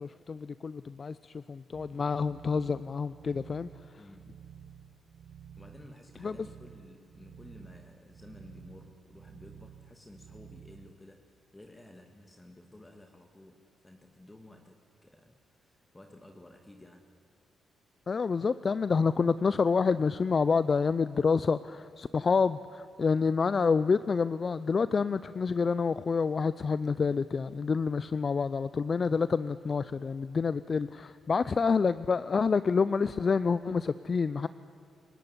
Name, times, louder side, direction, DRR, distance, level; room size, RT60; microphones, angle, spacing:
voice 1, 0.0-3.7 6.2-6.4 18.1-34.5, left 5 dB, 45° left, 15 dB, 0.6 m, -28 dB
sound 1, 1.7-10.9, right 8 dB, 60° right, 1.1 m, -52 dB
voice 2, 4.0-4.4 5.6-17.1, left 1 dB, 15° left, 4 dB, 2.3 m, -53 dB
28.0 x 17.5 x 9.9 m, 2.7 s
supercardioid pair, 65°, 0 cm